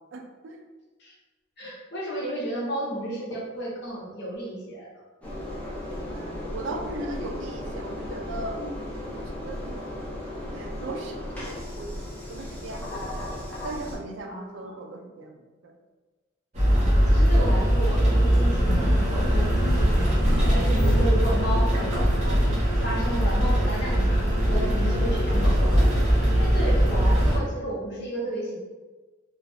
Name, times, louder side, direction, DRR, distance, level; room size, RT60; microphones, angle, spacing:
voice 1, 0.1-0.6 6.0-8.6 9.0-9.8 10.5-12.0 12.3-13.1 13.6-15.8, right 2 dB, 65° right, 3 dB, 0.4 m, -38 dB
voice 2, 1.6-4.9 14.3-14.7 16.7-20.1 20.6-22.4 22.8-24.2 24.5-25.9 26.3-28.6, right 1 dB, 55° left, -4 dB, 0.8 m, -33 dB
Engine, 5.2-14.0, left 1 dB, 5° left, 0.7 m, -35 dB
sound 1, 16.6-27.4, equal, 35° right, 0.8 m, -21 dB
2.5 x 2.3 x 3.3 m, 1.3 s
head